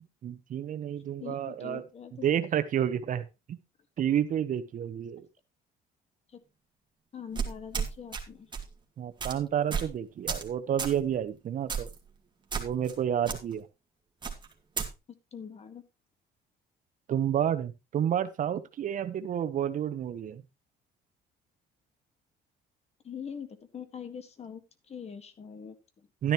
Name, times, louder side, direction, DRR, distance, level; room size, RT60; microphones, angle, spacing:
voice 1, 0.2-1.8 2.1-3.6 4.0-5.3 9.0-11.9 12.6-13.7 17.1-20.4 26.2-26.3, right 9 dB, 50° right, 11 dB, 1.0 m, -30 dB
voice 2, 1.2-2.2 6.3-6.4 7.1-8.5 15.3-15.8 23.0-23.5 23.7-24.6 24.9-26.1, left 7 dB, 40° left, 10 dB, 1.7 m, -43 dB
sound 1, 7.3-8.2 8.5-8.7 9.2-9.3 9.7-9.9 10.3-10.5 10.8-11.0 11.7-12.0 12.5-12.9 13.2-13.4 14.2-14.9, right 6 dB, 25° right, 2.3 m, -32 dB
12.0 x 10.5 x 3.0 m, 0.26 s
cardioid pair, 110°, 17 cm